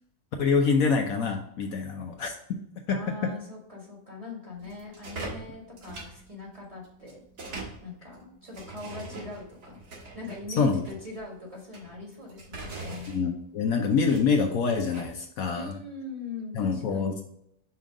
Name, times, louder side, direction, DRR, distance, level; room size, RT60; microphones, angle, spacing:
voice 1, 0.4-2.3 2.9-3.3 10.6-10.8 13.1-15.7 16.5-17.1, left 5 dB, 65° left, 3 dB, 1.1 m, -25 dB
voice 2, 2.9-7.2 7.8-9.8 10.1-13.1 15.5-17.2, left 3 dB, 20° right, -2 dB, 1.4 m, -41 dB
sound 1, 4.5-15.1, right 2 dB, 70° right, 2.1 m, -43 dB
5.5 x 3.8 x 4.7 m, 0.73 s
omnidirectional pair, 1.7 m